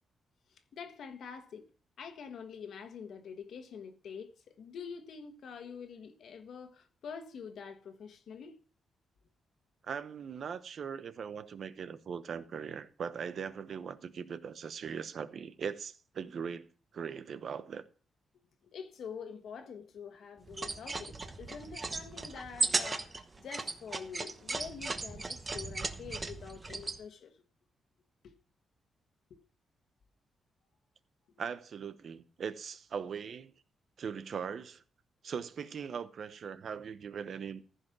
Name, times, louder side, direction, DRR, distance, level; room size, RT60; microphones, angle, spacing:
voice 1, 0.5-1.7 2.0-8.6 18.6-27.3 28.2-28.3 29.3-29.4, left 6 dB, 65° left, 1.5 m, -46 dB
voice 2, 9.8-16.7 16.9-17.8 31.4-33.5 34.0-34.8 35.2-37.6, right 7 dB, 50° right, 0.9 m, -40 dB
sound 1, 20.5-27.0, right 3 dB, 20° right, 1.1 m, -36 dB
15.0 x 5.5 x 6.0 m
wide cardioid pair, 145°, 0 cm